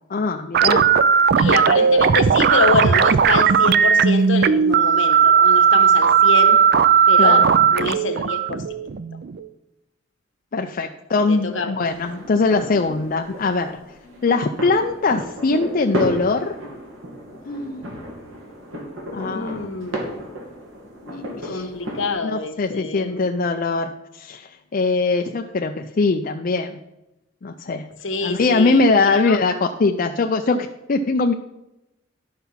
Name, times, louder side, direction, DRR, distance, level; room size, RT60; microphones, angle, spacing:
voice 1, 0.1-0.9 7.2-7.4 10.5-13.8 14.2-16.6 17.5-17.9 19.1-19.7 21.0-21.7 22.2-26.8 27.4-27.9 28.2-31.3, left 3 dB, 45° left, 4 dB, 0.4 m, -21 dB
sound 1, 0.5-9.5, right 7 dB, 50° right, 0.4 m, -16 dB
voice 2, 1.3-6.6 7.1-7.4 7.7-8.6 11.3-11.8 19.2-20.1 21.5-23.2 28.0-29.4, left 3 dB, 70° left, 6 dB, 1.2 m, -26 dB
sound 2, 11.9-22.1, equal, 85° right, 2.3 m, -33 dB
11.0 x 5.8 x 5.7 m, 0.93 s
head